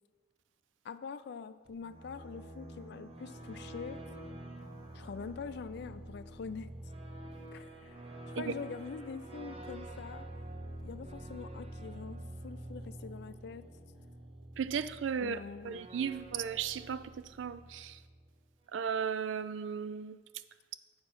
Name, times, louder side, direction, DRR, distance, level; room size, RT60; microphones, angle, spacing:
voice 1, 0.8-4.0 4.9-6.7 7.5-8.0 8.3-10.3 10.7-13.7 15.2-15.8, left 5 dB, 65° left, 0.4 m, -44 dB
sound 1, 1.6-18.3, right 1 dB, 30° right, 0.8 m, -47 dB
voice 2, 14.6-15.4 15.6-17.1 17.4-18.0 18.7-20.2, right 7 dB, 85° right, 0.4 m, -35 dB
8.5 x 4.5 x 5.9 m
head